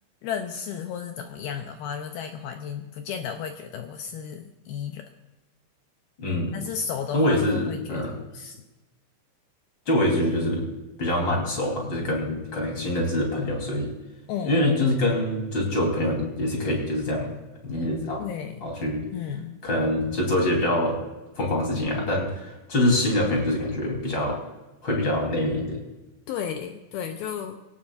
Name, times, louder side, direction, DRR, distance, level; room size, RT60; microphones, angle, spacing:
voice 1, 0.2-5.1 6.5-8.6 14.3-14.6 18.2-18.7 19.1-19.6 26.3-27.6, left 7 dB, 75° left, 5 dB, 2.3 m, -33 dB
voice 2, 6.2-6.5 7.1-8.1 9.9-10.6 11.0-13.9 14.4-17.3 17.6-18.2 18.6-19.0 19.6-21.0 21.4-24.4 24.8-25.8, left 1 dB, 25° left, -1 dB, 4.1 m, -25 dB
22.0 x 18.0 x 2.6 m, 1.0 s
omnidirectional pair, 5.1 m